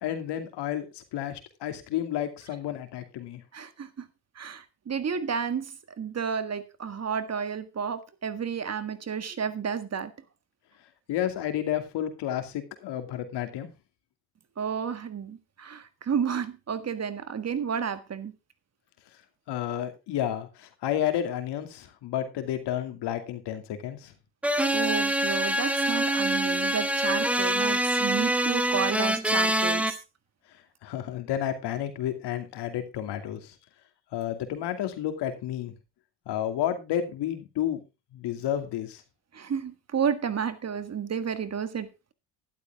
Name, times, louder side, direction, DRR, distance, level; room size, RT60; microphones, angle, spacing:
voice 1, 0.0-3.4 11.1-13.7 19.5-24.1 30.8-33.5 34.1-35.7 36.3-37.8 38.1-39.0, left 11 dB, 80° left, 2.5 m, -31 dB
voice 2, 3.5-4.1 4.3-5.7 6.0-10.1 14.6-18.3 24.7-30.0 39.3-41.9, right 7 dB, 40° right, 1.6 m, -31 dB
sound 1, 24.4-29.9, right 1 dB, 5° right, 1.6 m, -25 dB
12.0 x 11.5 x 3.5 m
cardioid pair, 95°, 40 cm